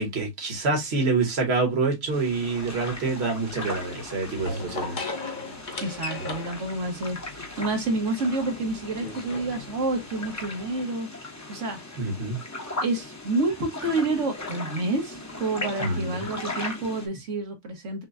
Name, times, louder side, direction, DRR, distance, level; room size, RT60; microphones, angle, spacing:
voice 1, 0.0-5.0 12.0-12.4 15.8-16.1, right 3 dB, 60° right, 1.6 m, -26 dB
sound 1, 2.1-17.1, left 2 dB, 15° left, 0.8 m, -38 dB
sound 2, 2.3-10.8, left 3 dB, 45° left, 1.0 m, -39 dB
voice 2, 5.8-11.1 11.5-11.8 12.8-18.0, right 2 dB, 85° right, 1.7 m, -29 dB
6.0 x 2.2 x 2.6 m
omnidirectional pair, 1.2 m